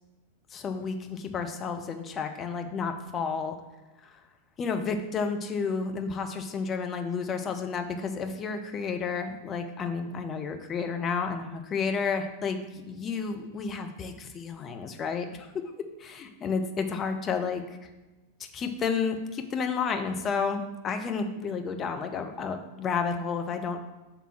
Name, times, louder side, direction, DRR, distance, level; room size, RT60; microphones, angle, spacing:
voice 1, 0.5-3.5 4.6-12.6 12.9-15.3 16.0-17.6 18.5-23.8, left 5 dB, 25° left, 5 dB, 0.7 m, -31 dB
5.8 x 3.5 x 5.7 m, 1.1 s
figure-of-eight pair, 90°, 0 cm